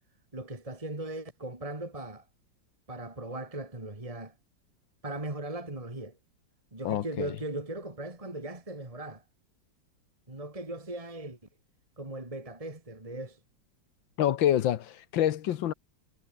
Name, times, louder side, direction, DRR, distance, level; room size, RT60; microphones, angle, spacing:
voice 1, 0.3-2.3 2.9-4.3 5.0-6.2 6.7-9.2 10.3-11.4 12.0-13.4, right 2 dB, 15° right, 2.8 m, -38 dB
voice 2, 6.8-7.3 14.2-15.7, left 11 dB, 80° left, 1.7 m, -27 dB
omnidirectional pair, 2.1 m